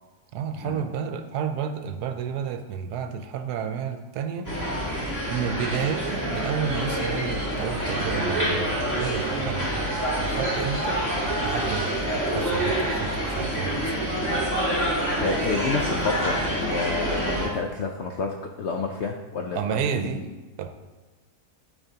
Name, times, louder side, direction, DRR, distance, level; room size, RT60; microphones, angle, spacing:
voice 1, 0.3-4.7 5.3-9.9 10.2-11.0 11.4-14.2 19.5-20.2 20.6-20.7, right 7 dB, 75° right, 7 dB, 1.1 m, -31 dB
sound 1, 4.4-17.5, right 1 dB, 10° left, 1.8 m, -27 dB
voice 2, 15.2-20.3, left 4 dB, 75° left, 2 dB, 0.6 m, -30 dB
12.5 x 4.6 x 2.8 m, 1.2 s
omnidirectional pair, 1.7 m